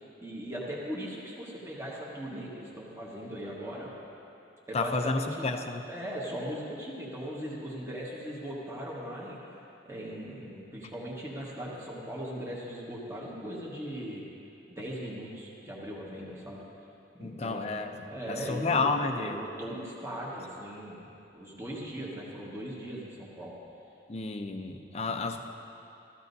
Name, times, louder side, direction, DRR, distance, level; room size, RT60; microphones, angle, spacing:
voice 1, 0.2-3.9 4.7-5.5 5.9-9.4 9.8-14.2 14.7-16.6 17.2-23.5 25.1-25.2, equal, 15° right, -5 dB, 1.4 m, -39 dB
voice 2, 4.7-5.8 17.2-19.4 24.1-25.4, left 3 dB, 35° left, 6 dB, 0.6 m, -31 dB
14.5 x 14.5 x 2.7 m, 2.8 s
head